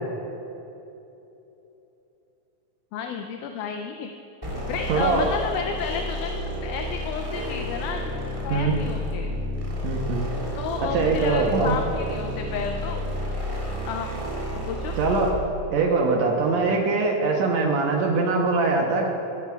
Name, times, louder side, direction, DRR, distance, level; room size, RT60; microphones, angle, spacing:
voice 1, 2.9-4.1 4.7-6.3 6.6-8.1 8.4-9.3 10.6-13.1 13.9-14.1 14.5-15.0, left 6 dB, 80° left, 4 dB, 2.0 m, -32 dB
sound 1, 4.4-15.5, left 1 dB, 10° right, 1.8 m, -31 dB
voice 2, 4.9-5.3 8.5-8.8 9.8-10.3 10.9-11.8 15.0-15.4 15.7-19.1, right 3 dB, 70° right, 1 dB, 2.0 m, -22 dB
15.0 x 12.5 x 2.4 m, 2.9 s
omnidirectional pair, 3.7 m